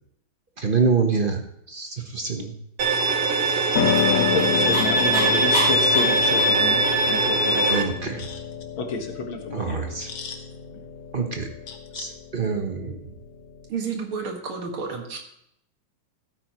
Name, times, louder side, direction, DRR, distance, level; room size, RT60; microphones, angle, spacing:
voice 1, 0.6-1.4 1.7-2.5 7.7-8.3 9.5-10.1 11.1-11.5 11.9-13.1, right 5 dB, 35° right, 4 dB, 0.9 m, -25 dB
Bowed string instrument, 2.8-7.8, right 2 dB, 55° right, 1.4 m, -21 dB
Piano, 3.7-13.7, left 9 dB, 50° left, 1.2 m, -29 dB
Dog, 3.7-7.3, equal, 20° right, 3.0 m, -32 dB
voice 2, 4.1-8.4 8.8-10.5 10.7-10.8 11.7-12.1, left 3 dB, 75° left, 4 dB, 2.2 m, -31 dB
voice 3, 13.7-15.2, right 5 dB, 85° right, 2 dB, 2.6 m, -30 dB
15.5 x 9.1 x 3.0 m, 0.75 s
omnidirectional pair, 2.3 m